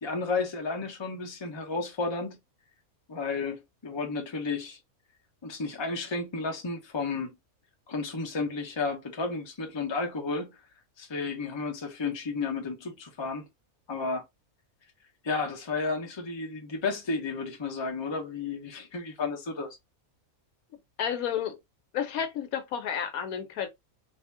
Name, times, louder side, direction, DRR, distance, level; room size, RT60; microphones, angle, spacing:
voice 1, 0.0-2.4 3.1-4.8 5.4-7.3 7.9-10.6 11.0-13.4 13.9-14.2 15.2-19.8, left 4 dB, 25° left, 0.7 m, -32 dB
voice 2, 21.0-21.6 21.9-23.7, left 8 dB, 75° left, 1.1 m, -31 dB
2.8 x 2.7 x 3.3 m
omnidirectional pair, 1.5 m